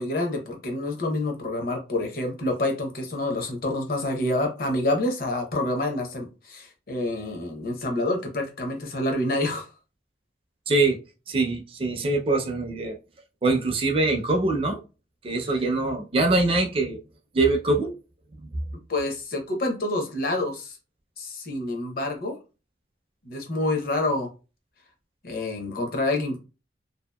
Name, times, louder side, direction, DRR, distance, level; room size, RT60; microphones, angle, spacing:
voice 1, 0.0-9.7 18.9-20.8 21.2-22.4 23.3-24.3 25.2-26.4, left 2 dB, 55° left, 3 dB, 0.7 m, -27 dB
voice 2, 10.7-11.0 11.3-13.0 13.4-14.8 15.2-17.0 17.3-17.9 18.4-18.5, right 2 dB, 30° right, 4 dB, 0.4 m, -23 dB
2.7 x 2.4 x 2.2 m, 0.30 s
head